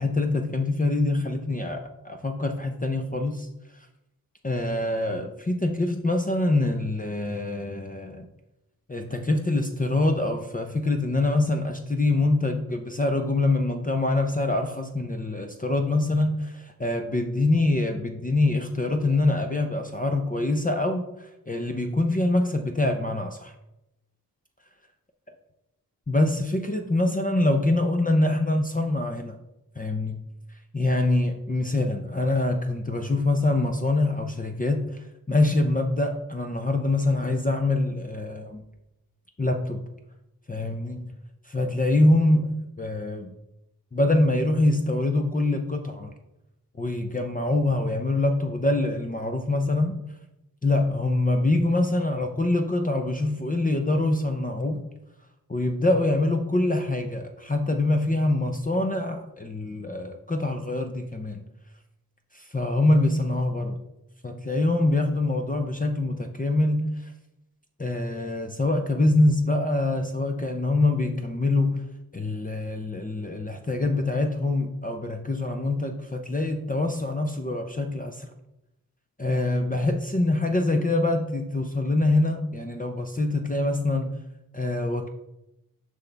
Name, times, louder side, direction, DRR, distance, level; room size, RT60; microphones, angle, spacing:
voice 1, 0.0-3.5 4.4-8.3 8.9-23.5 26.1-29.4 29.8-30.2 30.7-38.6 39.4-39.8 40.5-41.1 41.4-43.3 43.9-46.1 46.8-50.0 50.6-54.8 55.5-61.4 62.3-63.8 64.2-67.1 67.8-71.9 72.1-78.3 79.2-84.2 84.5-85.1, left 2 dB, 20° left, 4 dB, 0.7 m, -25 dB
6.1 x 5.7 x 3.4 m, 0.89 s
cardioid pair, 45°, 37 cm